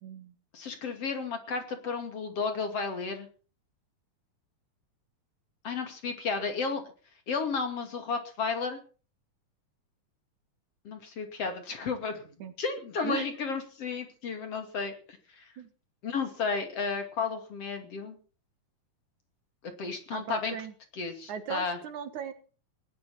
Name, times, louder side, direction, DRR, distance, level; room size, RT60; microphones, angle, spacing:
voice 1, 0.0-0.4 12.4-12.5 13.0-13.3 15.6-15.7 20.1-20.7 21.3-22.3, right 8 dB, 70° right, 10 dB, 2.8 m, -37 dB
voice 2, 0.5-3.3 5.6-6.8 7.3-8.8 10.8-12.2 12.6-14.9 15.4-15.5 16.0-18.2 19.8-20.6 21.0-21.8, left 4 dB, 50° left, 6 dB, 3.4 m, -33 dB
18.0 x 12.5 x 5.9 m, 0.39 s
omnidirectional pair, 3.7 m